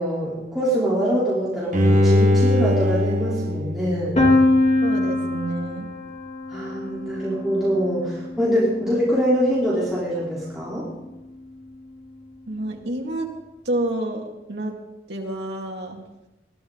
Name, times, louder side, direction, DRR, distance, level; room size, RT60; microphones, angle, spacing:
voice 1, 0.0-4.2 6.5-10.8, equal, 5° right, -10 dB, 3.9 m, -24 dB
Bowed string instrument, 1.7-4.8 5.3-5.4, left 1 dB, 45° right, 1.3 m, -21 dB
Piano, 4.2-9.9, left 2 dB, 40° left, 3.0 m, -24 dB
voice 2, 4.8-5.9 12.5-13.3 13.6-14.7 15.1-16.0, right 1 dB, 80° right, 0 dB, 2.4 m, -28 dB
21.0 x 13.0 x 4.0 m, 0.96 s
head